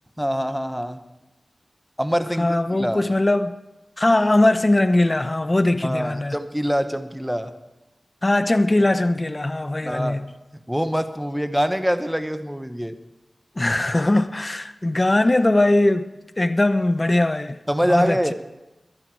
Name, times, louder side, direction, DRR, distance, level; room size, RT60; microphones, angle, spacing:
voice 1, 0.2-1.0 2.0-3.0 5.8-7.5 9.8-10.2 10.7-13.0 17.7-18.3, equal, 5° right, 1.2 m, -24 dB
voice 2, 2.4-3.5 4.0-6.4 8.2-10.3 13.6-16.1 16.4-17.6 17.9-18.3, left 1 dB, 30° left, 0.8 m, -20 dB
22.0 x 10.5 x 4.7 m
wide cardioid pair, 55°, 0 cm